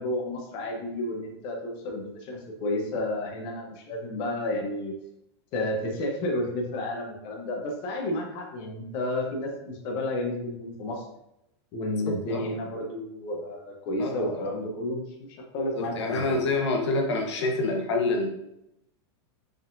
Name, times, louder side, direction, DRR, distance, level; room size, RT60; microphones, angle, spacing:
voice 1, 0.0-4.9 5.5-11.0 11.7-16.3, left 1 dB, 40° left, 0 dB, 1.0 m, -31 dB
voice 2, 12.1-12.4 14.0-14.3 15.7-18.3, left 2 dB, 90° left, 2 dB, 0.9 m, -27 dB
4.9 x 3.7 x 2.6 m, 0.83 s
supercardioid pair, 155°, 14 cm